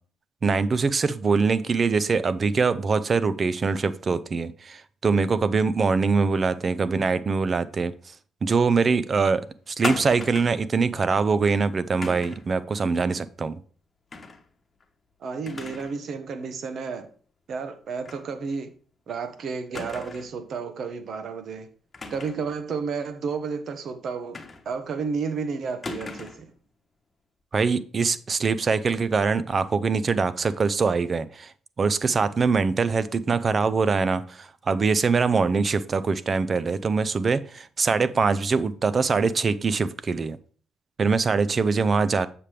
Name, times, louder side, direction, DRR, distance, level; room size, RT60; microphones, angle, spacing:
voice 1, 0.4-7.9 8.4-13.6 27.5-40.4 41.0-42.3, right 4 dB, 40° right, 16 dB, 0.6 m, -23 dB
sound 1, 9.8-10.7 12.0-12.5 14.1-14.4 14.8-14.9 15.5-16.0 16.3-16.4 18.0-18.3 18.6-18.7 19.7-20.4 21.9-22.5 24.3-24.9 25.8-26.5, left 4 dB, 30° left, 1.2 m, -36 dB
voice 2, 15.2-17.1 17.5-18.7 19.1-21.7 22.1-24.4 24.6-26.3, right 5 dB, 65° right, 9 dB, 1.2 m, -31 dB
7.3 x 6.8 x 3.3 m, 0.43 s
cardioid pair, 90°, 0 cm